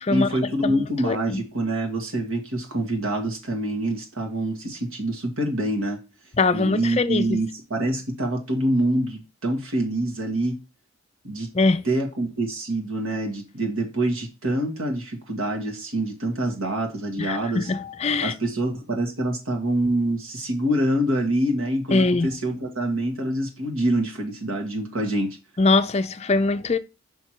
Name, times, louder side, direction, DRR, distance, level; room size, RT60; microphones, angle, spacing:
voice 1, 0.1-6.0 6.5-10.6 11.2-11.5 11.8-17.7 18.2-25.3, right 1 dB, 75° right, 1.7 m, -26 dB
voice 2, 0.6-1.4 6.4-7.4 11.5-11.9 17.2-18.3 21.9-22.3 25.6-26.8, left 3 dB, 30° left, 0.4 m, -22 dB
5.7 x 4.5 x 4.5 m
head